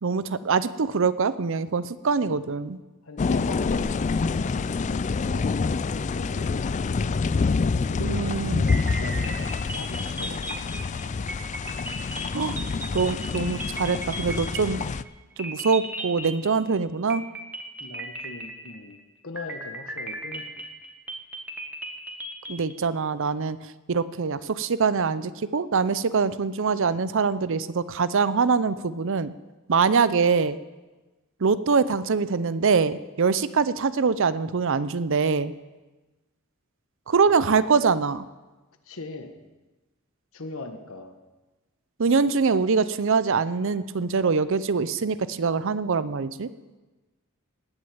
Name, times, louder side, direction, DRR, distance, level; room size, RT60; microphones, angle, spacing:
voice 1, 0.0-2.8 8.0-8.6 12.3-12.6 12.9-14.8 15.4-17.2 22.5-23.6 23.9-29.3 29.7-30.6 31.4-35.5 37.1-38.2 42.0-46.5, right 5 dB, 65° right, 15 dB, 0.6 m, -24 dB
voice 2, 3.0-7.3 7.8-11.3 12.4-12.5 17.8-20.7 37.3-37.6 38.8-39.3 40.3-41.1, left 2 dB, 70° left, 7 dB, 1.5 m, -41 dB
sound 1, 3.2-15.0, left 4 dB, 35° left, 0.4 m, -27 dB
sound 2, 8.7-15.1 15.4-16.8 17.1-19.0 19.4-22.7, right 1 dB, 10° right, 1.5 m, -36 dB
18.5 x 6.5 x 8.6 m, 1.2 s
head